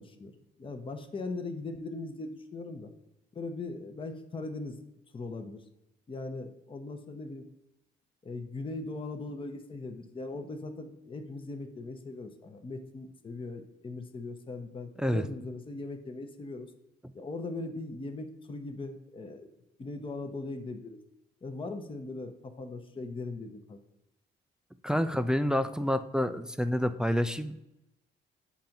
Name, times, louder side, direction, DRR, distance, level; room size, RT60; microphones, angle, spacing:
voice 1, 0.0-2.9 3.3-4.8 5.1-5.6 6.1-7.5 8.2-16.7 17.1-19.5 19.8-21.0 21.4-23.8, left 3 dB, 25° left, 6 dB, 0.7 m, -39 dB
voice 2, 24.8-27.6, equal, 5° right, 10 dB, 0.3 m, -28 dB
7.1 x 2.6 x 5.7 m, 0.90 s
cardioid pair, 90°, 20 cm